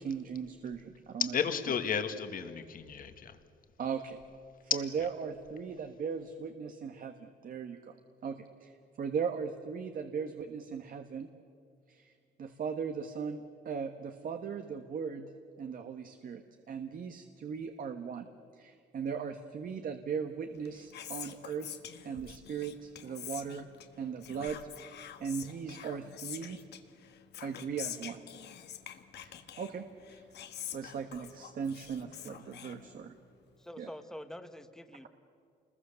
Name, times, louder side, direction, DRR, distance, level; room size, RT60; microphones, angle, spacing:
voice 1, 0.0-1.3 3.8-4.2 4.7-7.9 8.2-11.3 11.9-12.1 12.4-15.3 15.6-18.3 18.5-21.7 22.0-23.7 24.0-26.6 27.4-28.2 29.2-29.8 30.1-30.3 30.7-33.1 33.8-33.9, right 6 dB, 50° right, 6 dB, 1.3 m, -38 dB
voice 2, 1.2-3.4 4.7-4.8, left 7 dB, 50° left, 8 dB, 1.9 m, -32 dB
Whispering, 20.5-33.3, left 9 dB, 65° left, 1.6 m, -47 dB
voice 3, 33.6-35.1, left 1 dB, 5° left, 8 dB, 1.4 m, -46 dB
29.0 x 21.0 x 6.9 m, 2.3 s
cardioid pair, 135°, 19 cm